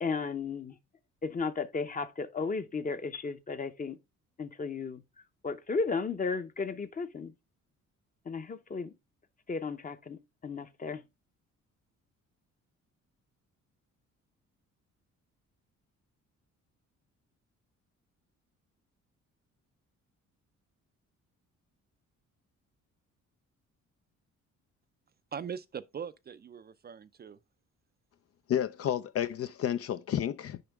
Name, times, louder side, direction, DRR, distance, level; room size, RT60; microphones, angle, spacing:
voice 1, 0.0-0.8 1.2-4.0 4.4-5.0 5.4-7.3 8.2-9.0 9.5-11.0, left 4 dB, 25° left, 0.8 m, -34 dB
voice 2, 25.3-27.4, right 7 dB, 35° right, 0.4 m, -41 dB
voice 3, 28.5-30.6, left 10 dB, 50° left, 0.4 m, -31 dB
6.8 x 5.1 x 3.5 m
cardioid pair, 90°, 30 cm